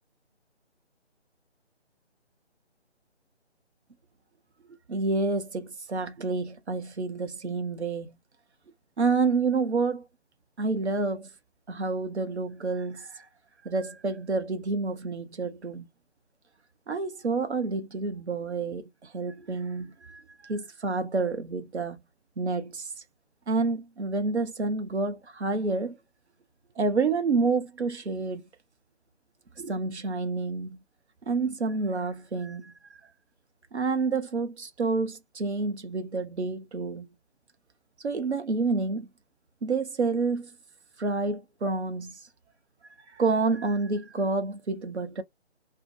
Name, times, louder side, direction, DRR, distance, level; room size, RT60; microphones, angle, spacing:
voice 1, 4.9-8.1 9.0-10.0 10.6-11.3 11.7-13.1 13.6-15.9 16.9-22.0 22.4-22.8 23.5-26.0 26.8-28.4 29.6-30.8 31.3-32.7 33.7-37.1 38.0-39.1 39.6-40.5 41.0-42.2 43.2-45.2, right 4 dB, 70° right, 0.8 m, -28 dB
2.7 x 2.1 x 2.5 m
figure-of-eight pair, 150°, 34 cm